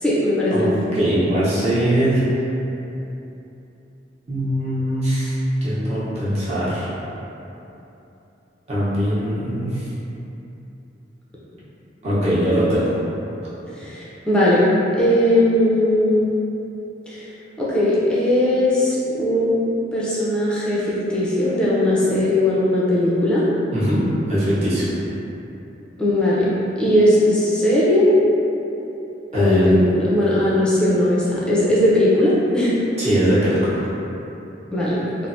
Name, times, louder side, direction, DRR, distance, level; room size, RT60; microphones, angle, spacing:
voice 1, 0.0-0.6 13.8-14.6 15.0-16.3 17.1-17.3 17.6-19.6 19.9-23.4 26.0-26.5 26.8-28.2 29.3-32.7 34.7-35.0, left 1 dB, 5° left, -8 dB, 0.4 m, -18 dB
voice 2, 0.5-2.2 4.3-6.9 8.7-9.9 12.0-12.9 23.7-24.9 29.3-29.8 33.0-33.8, equal, 35° right, -11 dB, 0.8 m, -21 dB
3.2 x 2.0 x 2.6 m, 2.9 s
head